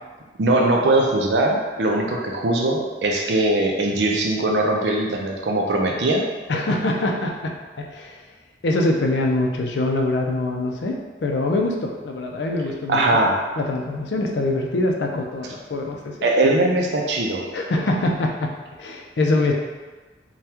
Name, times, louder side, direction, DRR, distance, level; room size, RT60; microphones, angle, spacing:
voice 1, 0.4-6.2 12.9-13.3 16.2-17.5, right 2 dB, 65° right, 0 dB, 0.5 m, -20 dB
voice 2, 6.5-8.2 8.6-13.3 13.6-16.2 17.5-19.5, left 2 dB, 70° left, 1 dB, 0.4 m, -24 dB
3.4 x 2.2 x 2.8 m, 1.3 s
head